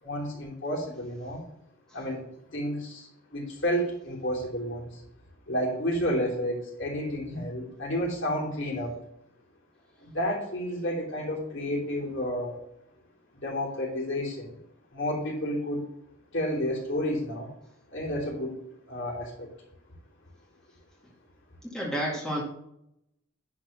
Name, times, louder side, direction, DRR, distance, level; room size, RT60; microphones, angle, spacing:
voice 1, 0.0-1.4 1.9-2.2 2.5-5.0 5.5-9.0 10.0-12.6 13.4-14.5 14.9-15.9 16.3-17.5 17.9-18.5 18.9-19.5, equal, 55° left, -3 dB, 3.2 m, -31 dB
voice 2, 21.6-22.4, equal, ahead, -6 dB, 2.0 m, -31 dB
10.5 x 4.2 x 5.7 m, 0.78 s
head